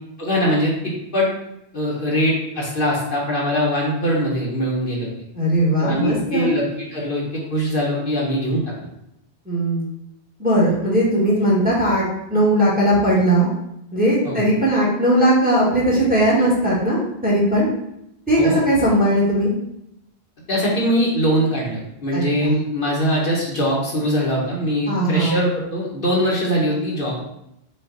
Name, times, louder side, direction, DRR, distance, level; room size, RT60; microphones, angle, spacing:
voice 1, 0.2-1.3 1.7-5.1 5.8-7.2 7.5-8.7 14.2-14.4 18.4-18.6 20.5-27.2, equal, 55° left, -4 dB, 1.2 m, -22 dB
voice 2, 5.3-6.5 9.5-9.8 10.4-13.5 13.9-17.7 18.3-19.5 22.1-22.6 24.9-25.4, right 1 dB, 10° right, -6 dB, 1.3 m, -18 dB
5.4 x 2.5 x 3.8 m, 0.80 s
omnidirectional pair, 1.1 m